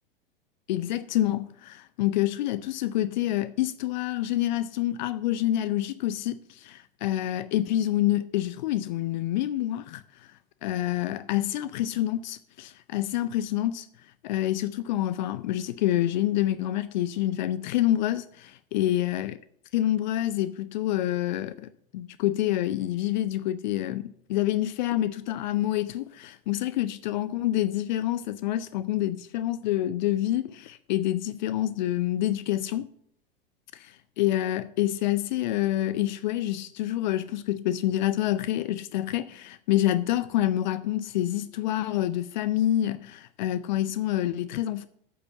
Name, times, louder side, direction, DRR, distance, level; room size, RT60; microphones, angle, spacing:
voice 1, 0.7-10.0 10.6-13.9 14.2-19.4 19.7-32.9 33.7-44.9, left 13 dB, 50° left, 0.5 m, -27 dB
8.4 x 4.8 x 7.1 m
figure-of-eight pair, 90°, 29 cm